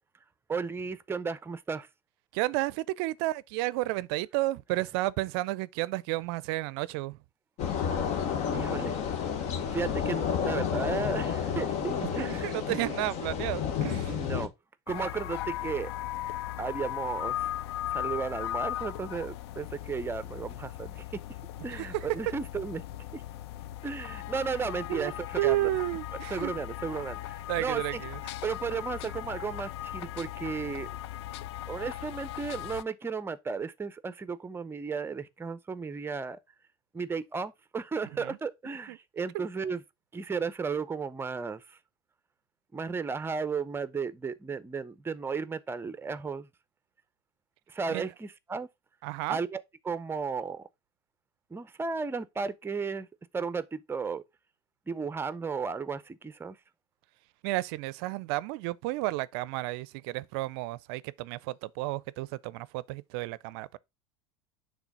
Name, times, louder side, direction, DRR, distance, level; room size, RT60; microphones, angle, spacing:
voice 1, 0.5-1.9 8.5-9.0 9.7-12.9 14.1-14.5 14.9-15.9 16.6-17.4 17.9-21.0 21.6-22.8 23.1-23.2 23.8-25.6 26.3-28.0 28.4-30.9 31.7-36.4 36.9-39.8 40.1-41.6 42.7-46.5 47.7-48.7 49.3-50.7 51.5-53.1 53.3-54.2 54.9-56.6, right 5 dB, 15° right, 0.7 m, -34 dB
voice 2, 2.3-7.2 12.0-14.1 21.7-22.1 24.9-26.5 27.5-28.2 38.2-38.4 38.9-39.0 39.3-39.4 47.9-48.1 49.0-49.4 57.4-63.8, right 18 dB, 65° right, 0.4 m, -32 dB
sound 1, 7.6-14.5, left 7 dB, 55° left, 1.3 m, -31 dB
sound 2, 14.9-32.8, left 13 dB, 75° left, 0.4 m, -38 dB
6.0 x 3.6 x 5.3 m
hypercardioid pair, 95°, 14 cm